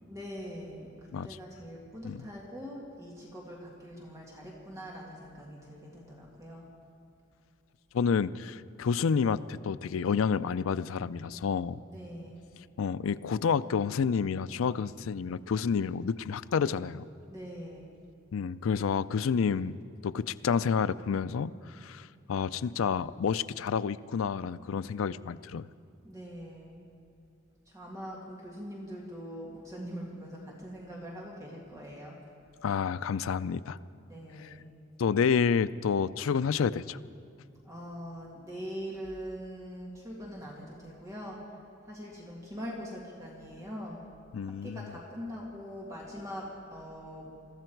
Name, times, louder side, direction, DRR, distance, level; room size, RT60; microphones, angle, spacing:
voice 1, 0.1-6.7 11.9-12.4 17.3-17.9 26.0-26.8 27.7-32.2 34.1-34.7 37.6-41.4 41.8-44.0 44.5-47.3, equal, 15° right, -3 dB, 2.0 m, -42 dB
voice 2, 7.9-11.8 12.8-17.0 18.3-19.7 20.0-25.7 32.6-33.8 34.4-34.5 35.0-37.0 44.3-44.9, left 6 dB, 90° left, 15 dB, 0.4 m, -29 dB
22.0 x 14.0 x 4.6 m, 2.6 s
head